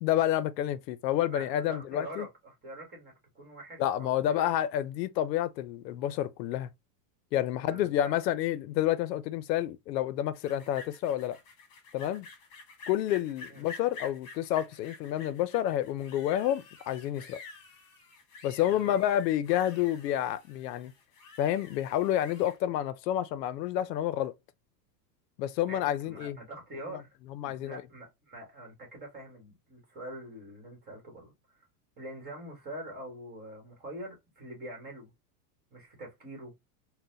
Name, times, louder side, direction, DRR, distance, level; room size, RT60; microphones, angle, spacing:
voice 1, 0.0-2.3 3.8-6.7 7.3-11.4 11.9-12.3 12.9-17.4 18.4-20.9 21.4-24.3 25.4-26.4 27.3-27.8, left 12 dB, 80° left, 0.6 m, -29 dB
voice 2, 1.3-4.5 7.5-8.1 13.5-13.7 18.6-19.0 25.7-31.6 32.0-35.1 35.7-36.5, right 1 dB, 20° right, 1.1 m, -45 dB
sound 1, 10.3-22.6, left 4 dB, 50° left, 1.2 m, -49 dB
3.8 x 2.1 x 2.5 m
supercardioid pair, 170°, 49 cm